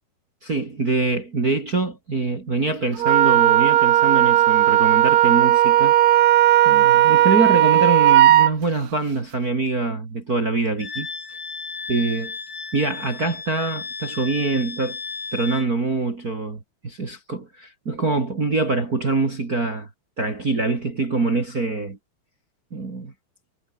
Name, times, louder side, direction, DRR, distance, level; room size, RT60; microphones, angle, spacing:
voice 1, 0.4-5.9 6.6-11.1 11.9-12.3 12.7-15.0 15.3-19.9 20.2-22.0 22.7-23.1, right 3 dB, 40° right, 1.3 m, -24 dB
Wind instrument woodwind instrument, 3.0-8.5, right 13 dB, 70° right, 2.1 m, -15 dB
Wind instrument woodwind instrument 2, 10.8-15.7, left 4 dB, 45° left, 8.3 m, -34 dB
omnidirectional pair, 5.7 m